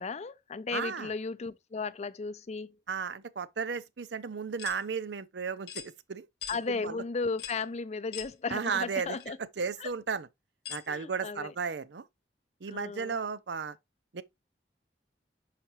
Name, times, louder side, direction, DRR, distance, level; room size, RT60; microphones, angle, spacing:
voice 1, 0.0-2.8 6.5-9.4 9.8-9.9 10.9-11.5 12.7-13.2, left 4 dB, 40° left, 0.4 m, -35 dB
voice 2, 0.7-1.1 2.9-6.3 6.8-7.0 8.5-9.2 9.6-10.3 10.7-12.1 12.6-13.8 14.1-14.2, right 5 dB, 75° right, 0.6 m, -34 dB
sound 1, 4.6-4.8 5.7-5.9 6.4-6.6 7.4-7.6 8.1-8.3 9.2-9.3 10.6-10.9, left 11 dB, 65° left, 0.9 m, -41 dB
5.8 x 5.6 x 3.0 m
head